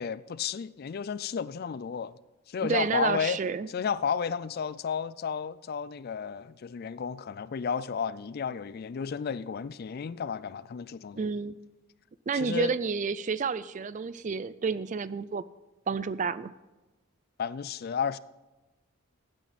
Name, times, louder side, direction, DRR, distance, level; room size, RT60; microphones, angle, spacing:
voice 1, 0.0-2.1 2.5-3.4 3.7-11.2 12.3-12.7 17.4-18.2, left 6 dB, 45° left, 0.3 m, -32 dB
voice 2, 2.6-3.7 11.2-11.5 12.3-15.4 15.9-16.5, right 5 dB, 35° right, 0.4 m, -30 dB
15.5 x 9.2 x 4.2 m
head